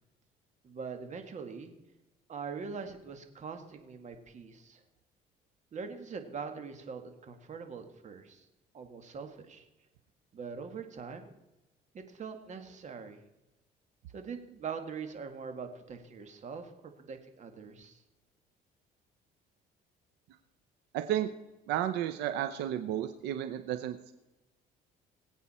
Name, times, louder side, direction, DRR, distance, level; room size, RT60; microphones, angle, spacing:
voice 1, 0.6-1.7 2.3-4.8 5.7-8.5 8.7-9.7 10.3-11.4 11.9-13.2 14.1-18.0, right 5 dB, 45° right, 7 dB, 1.9 m, -43 dB
voice 2, 20.9-21.3 21.7-24.1, right 11 dB, 90° right, 10 dB, 0.7 m, -32 dB
22.0 x 8.4 x 4.3 m, 1.0 s
cardioid pair, 110°, 17 cm